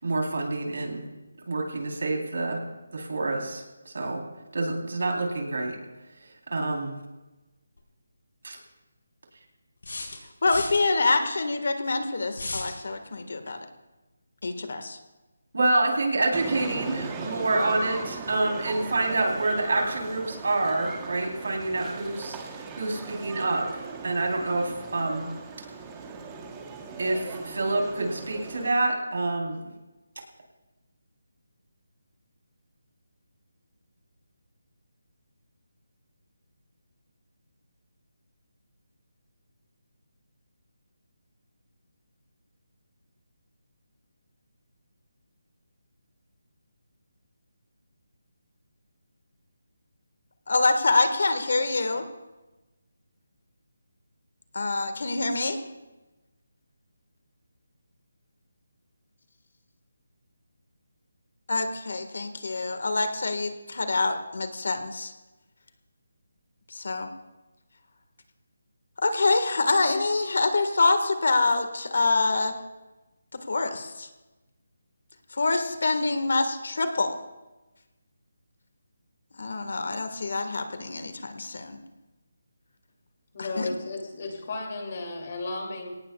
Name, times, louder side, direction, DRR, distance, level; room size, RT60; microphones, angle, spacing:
voice 1, 0.0-1.0 1.5-2.6 2.9-4.2 4.5-5.8 6.5-7.0 8.4-8.6 15.5-22.4 22.7-23.7 24.0-25.3 27.0-29.8, right 2 dB, 65° right, 1 dB, 3.6 m, -27 dB
sound 1, 7.8-7.9 9.8-10.8 12.3-12.8, left 2 dB, 90° left, 4.5 m, -34 dB
voice 2, 10.4-13.6 14.4-15.0 50.5-52.0 54.5-55.6 61.5-65.1 66.7-67.1 69.0-72.5 73.5-74.1 75.4-77.1 79.4-81.8 83.4-83.7, left 3 dB, 65° left, 8 dB, 1.6 m, -26 dB
sound 2, 16.3-28.7, right 4 dB, 10° right, 1.1 m, -39 dB
voice 3, 83.3-85.9, left 2 dB, 35° left, 2 dB, 2.6 m, -34 dB
23.0 x 18.0 x 2.4 m, 1.1 s
figure-of-eight pair, 175°, 0 cm